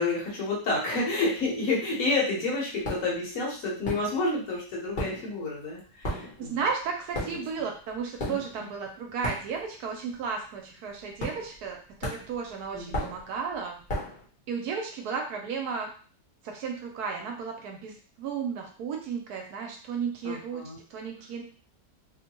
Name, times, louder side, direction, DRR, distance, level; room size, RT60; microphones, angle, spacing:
voice 1, 0.0-6.6 8.3-8.4 12.7-13.1 20.2-20.8, left 3 dB, 60° left, -3 dB, 1.3 m, -29 dB
sound 1, 2.8-3.2 3.8-4.5 4.7-9.9 10.1-10.4 11.2-11.7 12.0-14.3, equal, 40° left, 1.0 m, -35 dB
voice 2, 6.4-13.8 14.5-15.9 16.4-20.6 20.9-21.4, right 6 dB, 75° right, 2 dB, 1.1 m, -34 dB
3.0 x 2.1 x 2.9 m, 0.40 s
omnidirectional pair, 1.8 m